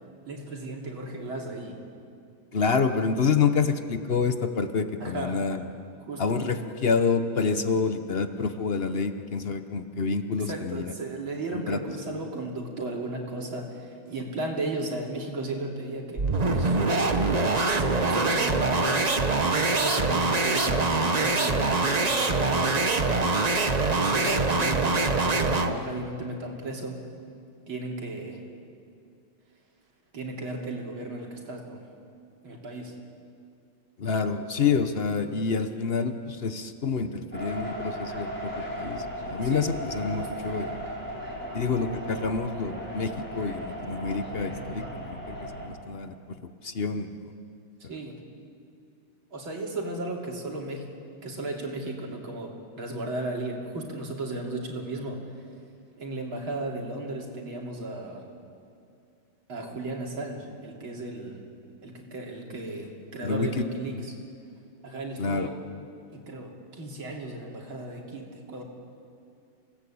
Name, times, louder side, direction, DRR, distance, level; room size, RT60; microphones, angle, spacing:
voice 1, 0.3-1.8 5.0-5.4 6.0-6.4 10.5-17.3 17.7-19.1 19.4-23.3 24.0-27.0 27.7-28.4 30.1-31.8 32.4-32.9 39.4-39.7 40.1-40.3 47.8-48.2 49.3-50.9 51.2-55.2 56.0-58.2 59.5-61.4 61.8-64.2 64.8-65.5 66.3-68.6, right 2 dB, 65° right, 0 dB, 3.7 m, -35 dB
voice 2, 2.5-5.6 6.2-10.9 11.5-11.8 34.0-40.8 41.5-46.1 46.6-47.1 63.2-63.6 63.9-64.0 65.2-65.5, left 5 dB, 55° left, 9 dB, 0.6 m, -28 dB
sound 1, 16.2-25.8, right 3 dB, 35° right, 0.6 m, -24 dB
sound 2, 37.3-45.7, equal, 5° left, 5.1 m, -36 dB
28.0 x 18.0 x 8.6 m, 2.4 s
omnidirectional pair, 2.4 m